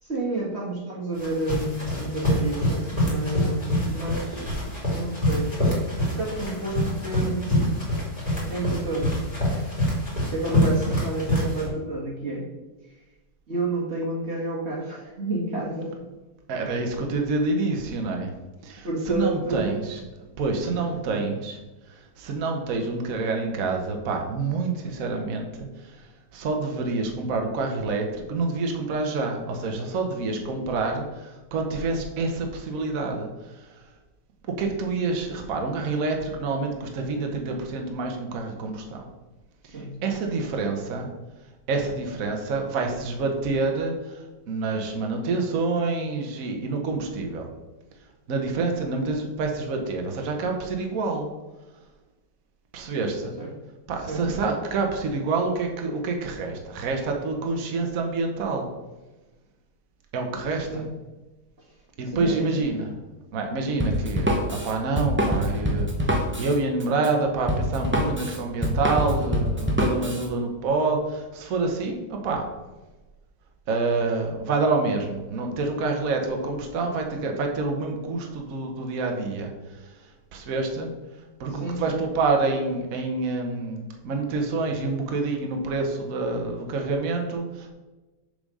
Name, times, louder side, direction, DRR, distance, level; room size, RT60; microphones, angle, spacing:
voice 1, 0.0-5.5 6.0-7.5 8.5-9.1 9.4-9.7 10.3-12.5 13.5-15.9 18.8-19.8 20.7-21.3 39.6-40.1 53.4-53.5 54.1-54.2 60.7-60.9 62.1-62.7 81.5-82.0, right 2 dB, 40° right, -3 dB, 1.7 m, -30 dB
sound 1, 1.1-11.7, equal, 20° left, 2.7 m, -26 dB
voice 2, 16.5-18.3 18.6-20.0 20.4-21.6 21.9-26.1 26.3-33.3 33.5-33.7 34.5-39.0 39.7-41.1 41.7-47.5 48.3-51.3 52.7-53.3 53.9-58.7 60.1-60.8 62.0-62.9 63.3-72.4 73.7-79.5 80.3-80.9 81.4-87.7, right 3 dB, 55° right, 3 dB, 1.3 m, -27 dB
Drum kit, 63.8-70.3, equal, 10° right, 0.5 m, -25 dB
6.8 x 5.0 x 5.4 m, 1.1 s
omnidirectional pair, 2.0 m